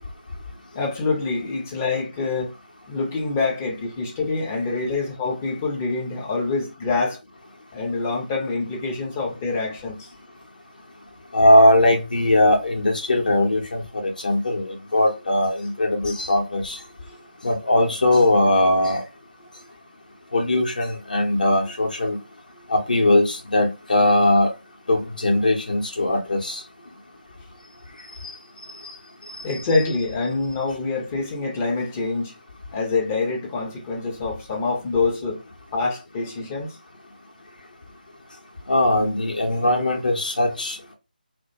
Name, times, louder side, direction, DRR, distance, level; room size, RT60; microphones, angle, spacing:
voice 1, 0.8-2.5 2.9-7.2 7.7-10.0 29.4-32.3 32.7-35.4 35.7-36.7, left 3 dB, 15° left, 0.4 m, -25 dB
voice 2, 11.3-16.8 17.4-19.0 20.3-22.2 22.7-24.5 24.9-26.6 29.5-29.6 29.9-30.0 38.7-40.9, left 1 dB, 60° left, 0.7 m, -20 dB
2.3 x 2.1 x 2.7 m
figure-of-eight pair, 155°, 5 cm